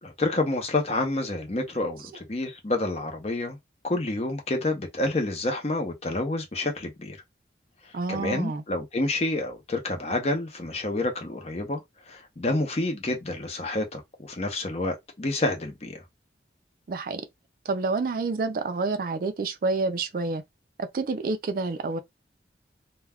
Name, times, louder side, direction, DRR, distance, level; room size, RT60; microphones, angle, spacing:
voice 1, 0.0-3.6 3.8-7.2 8.1-11.8 12.1-16.0, left 2 dB, 35° left, 0.6 m, -28 dB
voice 2, 7.9-8.6 16.9-17.2 17.7-20.4 20.8-22.0, right 3 dB, 50° right, 0.3 m, -28 dB
2.2 x 2.2 x 3.4 m
head